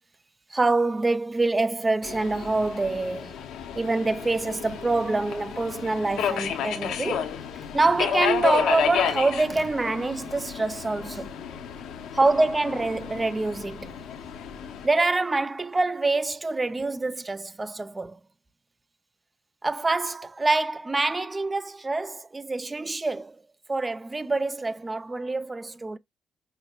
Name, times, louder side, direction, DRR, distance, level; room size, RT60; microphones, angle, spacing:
voice 1, 0.5-3.3 3.8-7.3 7.7-11.4 12.1-13.9 14.8-18.2 19.6-23.4 23.7-26.0, right 3 dB, 20° right, 0.4 m, -25 dB
Subway metro underground, 2.0-14.9, left 8 dB, 85° left, 0.7 m, -32 dB
5.8 x 2.2 x 2.2 m
cardioid pair, 90°, 0 cm